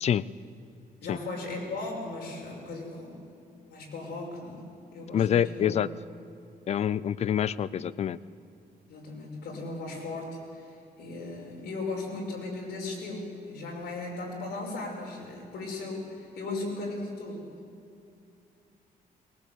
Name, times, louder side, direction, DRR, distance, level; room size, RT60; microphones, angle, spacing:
voice 1, 1.0-3.2 3.7-4.7 4.9-5.8 8.9-17.5, left 2 dB, 85° left, -1 dB, 6.1 m, -37 dB
voice 2, 5.1-5.9 6.7-8.2, left 9 dB, 40° left, 19 dB, 0.5 m, -26 dB
21.5 x 19.0 x 8.3 m, 2.6 s
cardioid pair, 175°, 16 cm